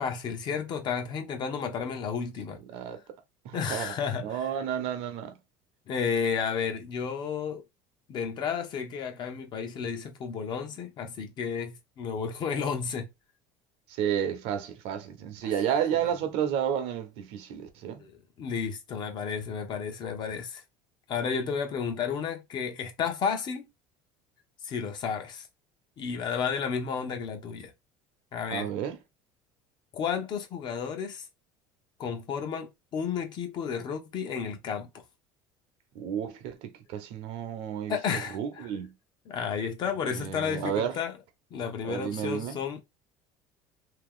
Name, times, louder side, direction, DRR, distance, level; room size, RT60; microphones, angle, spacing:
voice 1, 0.0-2.6 3.5-4.5 5.9-7.6 8.1-13.1 18.0-18.1 18.4-20.6 21.1-23.6 24.6-25.5 26.0-27.7 28.3-28.7 29.9-31.3 32.0-34.9 37.9-38.7 39.3-41.1 41.5-42.8, left 6 dB, 45° left, 0.9 m, -32 dB
voice 2, 2.7-3.0 3.4-5.4 13.9-18.0 28.5-29.0 35.9-38.0 38.3-38.9 40.1-41.0 41.8-42.6, right 9 dB, 70° right, 0.8 m, -31 dB
2.9 x 2.9 x 3.8 m
cardioid pair, 135°, 11 cm